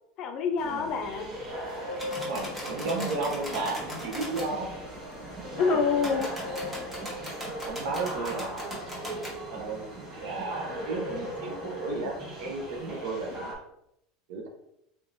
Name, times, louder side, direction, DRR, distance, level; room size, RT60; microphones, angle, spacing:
voice 1, 0.2-1.3 5.5-6.3 13.3-13.4, left 5 dB, 45° left, 5 dB, 0.5 m, -27 dB
sound 1, 0.6-13.6, equal, 35° right, 1.1 m, -38 dB
sound 2, 2.0-4.5 6.0-9.4, equal, 10° right, 1.0 m, -39 dB
sound 3, 2.2-12.9, right 2 dB, 5° left, 0.7 m, -48 dB
voice 2, 2.2-4.7 5.4-5.8 7.6-8.7 9.5-9.9 10.2-13.5 14.3-14.5, right 3 dB, 75° right, 1 dB, 0.8 m, -34 dB
3.4 x 3.2 x 2.6 m, 0.79 s
supercardioid pair, 140°, 0 cm